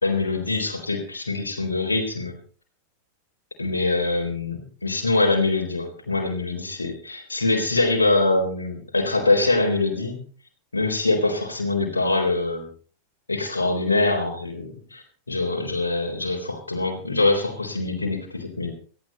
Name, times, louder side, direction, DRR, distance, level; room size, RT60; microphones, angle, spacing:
voice 1, 0.0-2.4 3.6-10.2 10.7-12.7 13.3-18.7, left 2 dB, 75° left, 2 dB, 3.9 m, -24 dB
18.0 x 14.5 x 4.2 m, 0.41 s
figure-of-eight pair, 90°, 0 cm